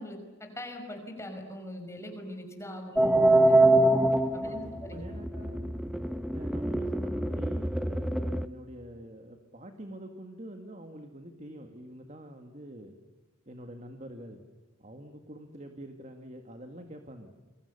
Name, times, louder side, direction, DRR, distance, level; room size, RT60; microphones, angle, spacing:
voice 1, 0.0-3.6 4.3-5.0, left 1 dB, 15° left, 4 dB, 5.5 m, -41 dB
sound 1, 3.0-8.5, right 1 dB, ahead, 0.8 m, -25 dB
voice 2, 4.3-5.8 6.3-12.9 13.5-14.4 14.8-17.3, right 1 dB, 35° right, 5 dB, 2.0 m, -46 dB
28.5 x 23.5 x 6.9 m, 1.2 s
head